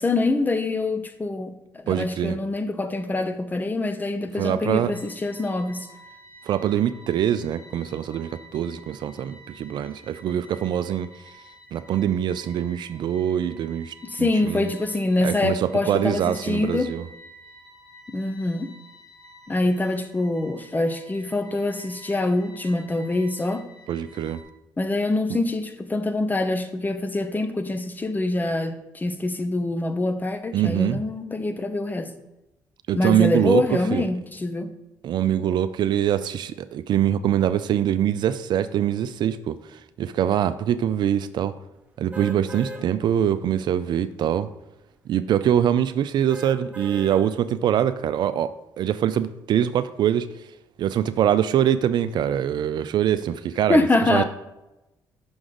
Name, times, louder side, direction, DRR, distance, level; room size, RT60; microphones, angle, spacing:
voice 1, 0.0-5.9 14.1-16.9 18.1-18.7 19.5-23.6 24.8-32.1 33.0-34.7 53.7-54.2, left 2 dB, 20° left, 0.9 m, -25 dB
voice 2, 1.9-2.4 4.4-4.9 6.5-11.1 11.7-14.7 15.2-17.1 23.9-24.4 25.3-25.4 30.5-31.0 32.9-34.1 35.0-41.5 42.0-44.5 45.1-50.3 50.8-54.2, right 10 dB, 65° right, 0.4 m, -24 dB
sound 1, 4.9-24.4, right 1 dB, 85° left, 2.5 m, -49 dB
sound 2, 42.1-42.8 43.4-43.5 46.3-47.2 47.8-47.9, right 1 dB, 15° right, 1.3 m, -37 dB
6.1 x 6.1 x 3.8 m
supercardioid pair, 60°, 8 cm